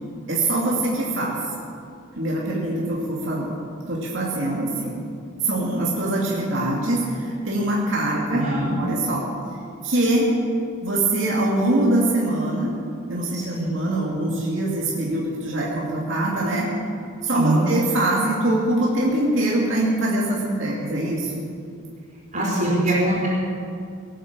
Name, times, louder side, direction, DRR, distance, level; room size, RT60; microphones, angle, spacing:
voice 1, 0.3-1.4 2.2-3.5 3.9-5.0 5.4-8.4 8.8-9.3 9.8-10.3 10.8-12.7 13.1-16.7 17.2-21.4 22.3-22.7, right 1 dB, 60° right, -4 dB, 2.4 m, -23 dB
voice 2, 8.4-8.7 13.3-13.7 17.3-17.6 22.3-23.3, right 1 dB, 35° right, -7 dB, 5.0 m, -23 dB
18.0 x 9.2 x 7.5 m, 2.4 s
head